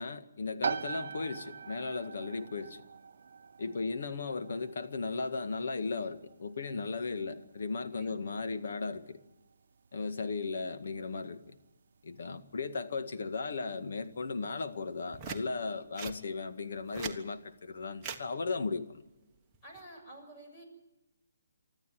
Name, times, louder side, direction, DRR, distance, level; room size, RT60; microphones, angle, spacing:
voice 1, 0.0-2.8 3.6-9.2 9.9-11.6 12.0-18.9, left 4 dB, 65° left, 1.9 m, -36 dB
sound 1, 0.6-15.1, right 6 dB, 60° right, 0.9 m, -44 dB
voice 2, 3.6-4.2 7.9-8.5 19.6-20.6, right 1 dB, 20° left, 6.9 m, -51 dB
sound 2, 15.1-15.4 16.0-16.2 16.8-17.2 18.0-18.2 19.5-19.8, right 7 dB, 15° right, 1.4 m, -40 dB
25.0 x 13.5 x 9.3 m
hypercardioid pair, 165°, 0 cm